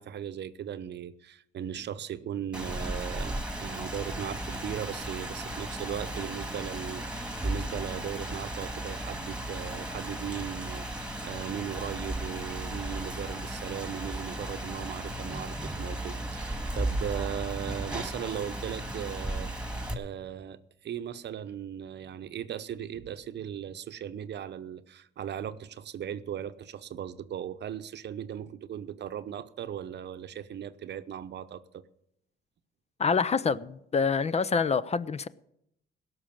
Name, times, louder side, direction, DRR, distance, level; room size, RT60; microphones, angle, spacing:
voice 1, 0.0-31.9, right 9 dB, 60° right, 0.8 m, -38 dB
Rain, 2.5-19.9, right 1 dB, 5° right, 2.0 m, -35 dB
voice 2, 33.0-35.3, left 5 dB, 35° left, 0.5 m, -26 dB
16.5 x 6.3 x 8.8 m
cardioid pair, 90°, 20 cm